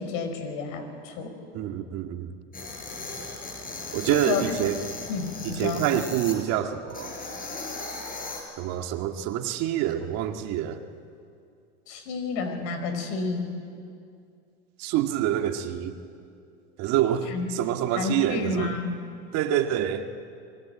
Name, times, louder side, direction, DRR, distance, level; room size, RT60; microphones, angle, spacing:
voice 1, 0.0-1.4 4.1-4.6 5.1-5.9 11.9-13.5 17.3-17.5 17.9-19.0, left 4 dB, 60° left, 7 dB, 5.1 m, -30 dB
voice 2, 1.5-2.3 3.9-4.8 5.4-7.1 8.6-10.8 14.8-15.9 16.8-18.7 19.3-20.1, right 11 dB, 55° right, 6 dB, 1.9 m, -26 dB
sound 1, 2.5-6.4 6.9-8.4, left 3 dB, 25° left, 6.5 m, -37 dB
26.0 x 22.0 x 9.0 m, 2.4 s
hypercardioid pair, 105°, 33 cm